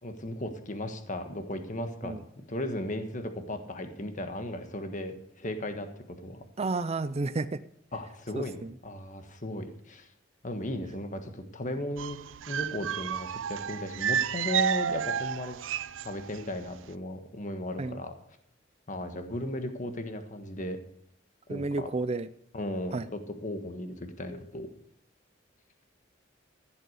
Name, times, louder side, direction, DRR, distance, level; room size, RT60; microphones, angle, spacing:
voice 1, 0.0-5.9 6.2-6.4 7.9-10.1 10.4-12.2 12.5-15.6 16.0-18.1 18.9-20.8 21.5-21.9 22.5-24.7, left 1 dB, 45° left, 7 dB, 1.4 m, -36 dB
voice 2, 6.6-7.6 8.3-8.7 17.8-18.0 21.5-22.3 22.9-23.1, right 3 dB, 35° right, 11 dB, 0.5 m, -31 dB
sound 1, 12.0-16.4 16.7-16.9, right 8 dB, 90° right, 0.5 m, -31 dB
15.0 x 8.0 x 6.6 m, 0.69 s
head